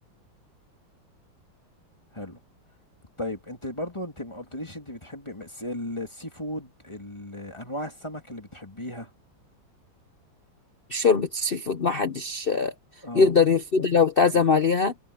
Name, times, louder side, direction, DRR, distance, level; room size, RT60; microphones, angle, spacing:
voice 1, 3.2-9.1 13.0-13.3 14.3-14.4, left 1 dB, 15° left, 2.6 m, -36 dB
voice 2, 10.9-12.7 13.1-14.9, left 5 dB, 85° left, 0.5 m, -21 dB
omnidirectional pair, 2.2 m